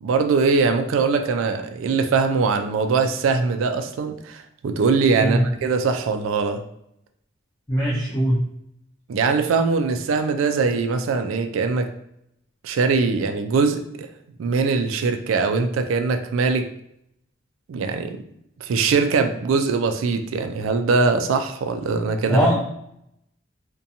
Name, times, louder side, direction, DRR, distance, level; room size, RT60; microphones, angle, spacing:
voice 1, 0.0-6.6 9.1-11.9 12.6-14.1 14.4-16.7 17.7-18.2 18.6-22.5, right 4 dB, 70° right, 7 dB, 0.3 m, -22 dB
voice 2, 7.7-8.4 22.3-22.6, equal, 15° left, -6 dB, 0.5 m, -20 dB
2.5 x 2.2 x 2.7 m, 0.76 s
head